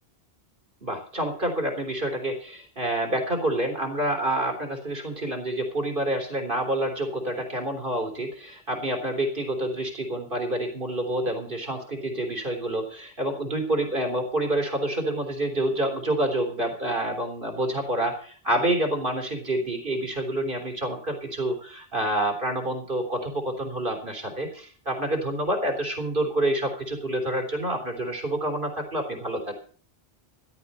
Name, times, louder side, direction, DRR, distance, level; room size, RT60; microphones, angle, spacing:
voice 1, 0.8-29.5, right 1 dB, 50° right, 4 dB, 3.7 m, -28 dB
14.5 x 12.0 x 5.5 m, 0.43 s
omnidirectional pair, 1.1 m